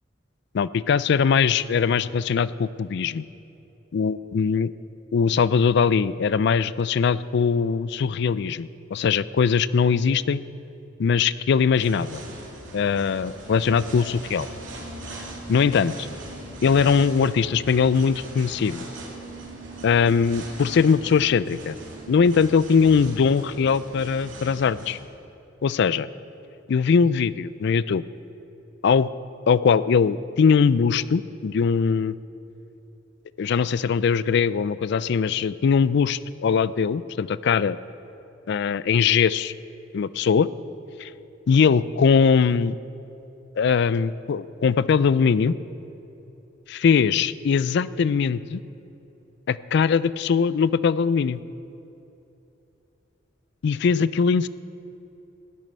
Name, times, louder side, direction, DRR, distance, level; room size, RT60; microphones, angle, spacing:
voice 1, 0.5-3.2 3.9-4.7 5.1-10.4 11.0-12.2 12.7-14.5 15.5-16.1 16.6-18.8 19.8-21.7 22.1-25.0 25.6-26.1 26.7-28.0 28.8-29.1 29.5-32.2 33.4-37.8 38.5-39.5 39.9-40.5 41.0-41.1 41.5-42.7 43.6-45.6 46.7-48.6 49.5-51.4 53.6-54.5, left 6 dB, 60° left, 17 dB, 0.4 m, -21 dB
sound 1, 11.7-25.0, right 1 dB, 75° right, 2.7 m, -40 dB
13.5 x 7.4 x 9.6 m, 3.0 s
head